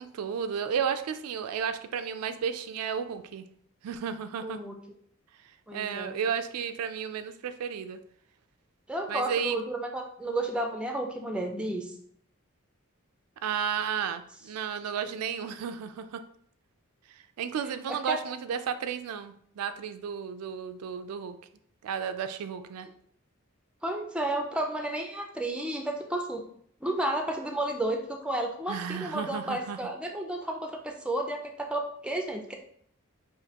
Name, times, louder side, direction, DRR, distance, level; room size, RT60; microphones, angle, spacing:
voice 1, 0.0-3.5 3.8-4.6 5.7-8.0 9.1-9.6 13.4-16.2 17.1-21.4 21.8-22.9 28.7-29.8, right 7 dB, 85° right, 10 dB, 0.3 m, -33 dB
voice 2, 4.4-4.8 5.7-6.2 8.9-11.9 17.9-18.2 23.8-26.4 26.8-32.5, right 1 dB, 5° right, 3 dB, 0.4 m, -32 dB
5.0 x 2.6 x 2.8 m, 0.65 s
head